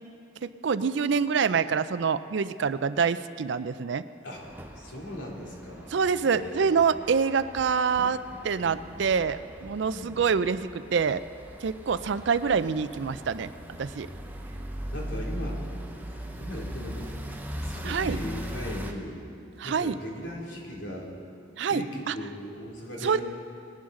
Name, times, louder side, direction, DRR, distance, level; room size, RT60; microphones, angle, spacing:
voice 1, 0.4-4.0 5.9-11.2 11.6-13.5 13.8-14.1 17.8-18.2 19.6-20.0 21.6-22.1 23.0-23.2, right 6 dB, 65° right, 14 dB, 0.4 m, -26 dB
sound 1, 4.3-18.9, equal, 10° right, 0.7 m, -39 dB
voice 2, 4.8-6.8 8.6-9.1 9.9-10.2 14.7-15.7 16.0-17.1 17.6-19.2 19.6-21.1 21.7-23.2, left 1 dB, 70° left, -2 dB, 2.7 m, -39 dB
20.0 x 11.0 x 3.8 m, 2.5 s
head